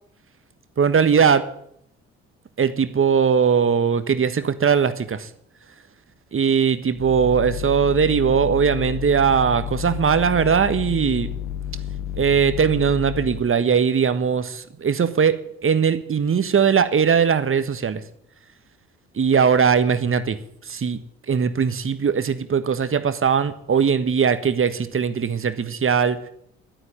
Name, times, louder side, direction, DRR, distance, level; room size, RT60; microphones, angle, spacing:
voice 1, 0.8-1.5 2.6-5.3 6.3-11.3 12.2-18.0 19.2-20.4 20.7-21.0 21.3-26.2, right 6 dB, 35° right, 12 dB, 1.5 m, -20 dB
sound 1, 6.9-13.5, left 10 dB, 60° left, 0.9 m, -31 dB
11.5 x 9.6 x 9.4 m, 0.71 s
figure-of-eight pair, 45°, 36 cm